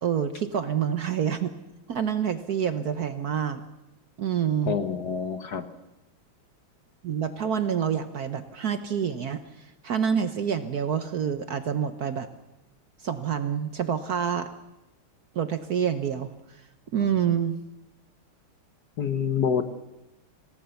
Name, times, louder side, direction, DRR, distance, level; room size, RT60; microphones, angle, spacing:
voice 1, 0.0-1.5 1.9-3.6 4.2-4.8 7.0-12.3 13.0-14.5 15.3-16.3 16.9-17.6, right 8 dB, 55° right, 9 dB, 1.2 m, -27 dB
voice 2, 4.6-5.7 17.0-17.3 19.0-19.6, left 7 dB, 55° left, 9 dB, 1.5 m, -27 dB
26.0 x 17.0 x 7.0 m, 0.96 s
omnidirectional pair, 2.3 m